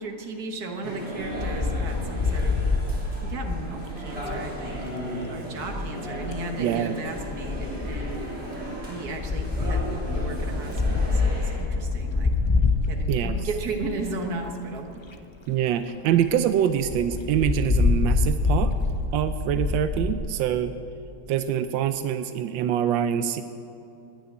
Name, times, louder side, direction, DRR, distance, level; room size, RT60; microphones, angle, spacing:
voice 1, 0.0-2.6 3.2-4.8 5.3-8.2 8.9-12.3 12.9-15.0, right 3 dB, 60° right, 3 dB, 1.9 m, -35 dB
sound 1, 0.8-11.6, equal, 30° right, 4.3 m, -35 dB
Wind, 1.2-4.9 6.0-6.4 7.1-14.1 14.7-14.8 15.1-15.2 15.5-15.6 15.9-16.0 16.2-16.4 16.8-20.1, left 4 dB, 45° left, 0.3 m, -26 dB
voice 2, 6.6-7.0 13.1-13.4 15.5-18.7 19.1-20.7 21.3-23.4, right 10 dB, 90° right, 10 dB, 1.3 m, -25 dB
19.0 x 6.5 x 9.5 m, 2.9 s
omnidirectional pair, 2.0 m